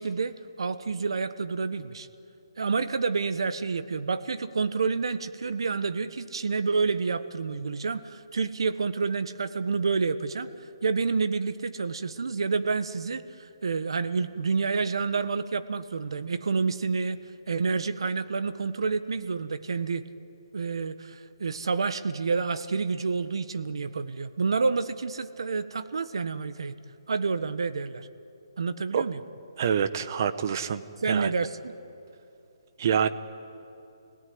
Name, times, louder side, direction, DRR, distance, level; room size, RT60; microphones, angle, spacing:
voice 1, 0.0-2.1 2.6-10.5 10.8-13.2 13.6-17.2 17.5-20.0 20.5-26.7 27.1-28.1 28.6-29.2 31.0-31.7, right 4 dB, 75° right, 11 dB, 1.4 m, -28 dB
voice 2, 29.6-30.8 31.1-31.3 32.8-33.1, right 7 dB, 40° right, 11 dB, 1.1 m, -26 dB
28.5 x 18.0 x 9.6 m, 2.8 s
hypercardioid pair, 165°, 3 cm